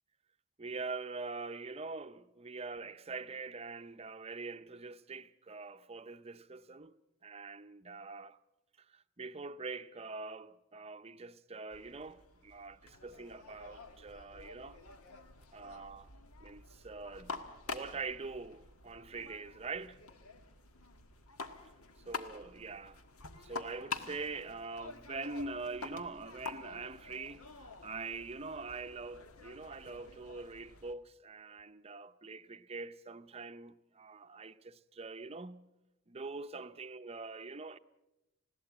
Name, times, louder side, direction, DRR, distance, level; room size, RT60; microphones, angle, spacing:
voice 1, 0.6-8.4 8.8-14.8 15.5-16.1 16.4-17.4 17.7-20.0 22.1-23.0 23.3-35.7 36.1-37.8, right 4 dB, 30° right, 0.6 m, -44 dB
sound 1, 11.7-30.9, left 4 dB, 85° left, 1.6 m, -48 dB
20.5 x 16.5 x 8.1 m
head